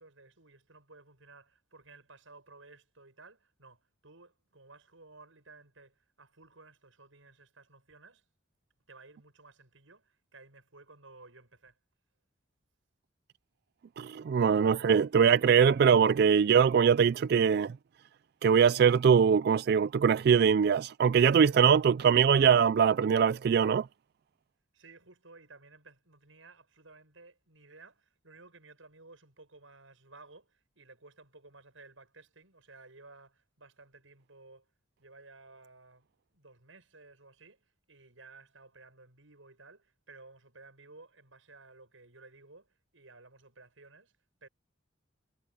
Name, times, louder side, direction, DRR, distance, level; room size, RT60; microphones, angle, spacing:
voice 1, 0.0-8.3 8.9-11.8 24.7-34.7 35.0-44.5, right 3 dB, 90° right, 7.5 m, -56 dB
voice 2, 14.0-17.7 18.4-23.9, right 7 dB, 55° right, 0.3 m, -22 dB
head